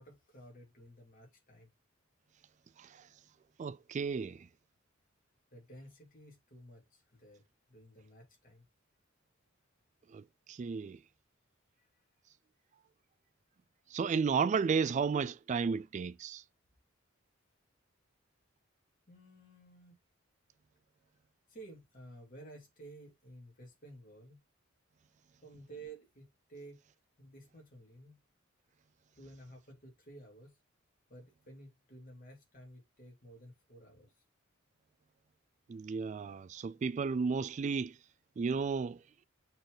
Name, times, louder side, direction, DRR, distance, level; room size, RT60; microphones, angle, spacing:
voice 1, 0.0-1.7 5.5-7.4 7.7-8.7 11.8-11.9 19.1-19.9 21.5-24.4 25.4-26.8 27.2-28.2 29.2-30.5 31.1-34.2, right 2 dB, 45° left, 3.1 m, -53 dB
voice 2, 3.6-4.5 10.1-11.0 13.9-16.4 35.7-37.9 38.4-39.0, right 5 dB, 35° right, 0.3 m, -33 dB
6.7 x 4.0 x 3.9 m
head